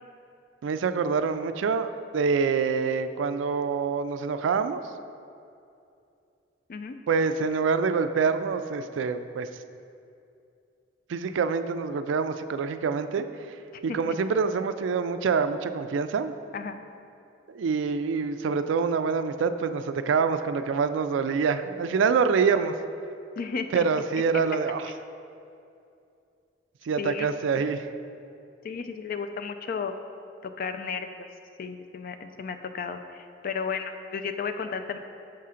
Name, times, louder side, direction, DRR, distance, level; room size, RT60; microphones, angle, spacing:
voice 1, 0.6-4.8 7.1-9.5 11.1-13.6 13.8-16.3 17.5-22.7 23.7-24.9 26.8-27.9, right 5 dB, 85° right, 10 dB, 0.3 m, -26 dB
voice 2, 13.7-14.2 16.5-16.8 23.4-23.8 27.0-27.3 27.6-27.7 28.6-29.9 30.4-31.3 31.6-35.0, left 5 dB, 50° left, 8 dB, 0.4 m, -34 dB
6.6 x 3.7 x 5.6 m, 2.6 s
head